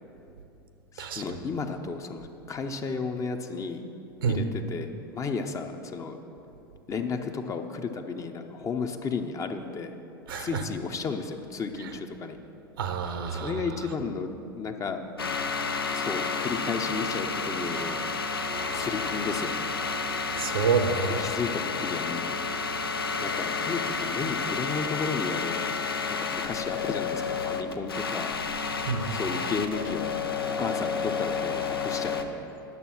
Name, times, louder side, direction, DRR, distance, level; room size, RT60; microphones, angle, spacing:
voice 1, 0.9-3.8 4.3-6.2 6.9-9.9 10.4-12.4 13.3-15.3 15.9-18.0 18.7-19.7 21.2-22.4 23.2-25.6 26.1-28.3 29.1-30.1 30.5-32.5, left 5 dB, 25° left, 6 dB, 0.8 m, -33 dB
voice 2, 10.3-10.6 11.8-11.9 12.8-13.6 20.3-21.3 28.9-29.2, right 5 dB, 70° right, 8 dB, 0.9 m, -28 dB
sound 1, 15.2-32.2, left 5 dB, 85° left, 0.6 m, -30 dB
11.0 x 6.9 x 6.0 m, 2.8 s
figure-of-eight pair, 85°, 12 cm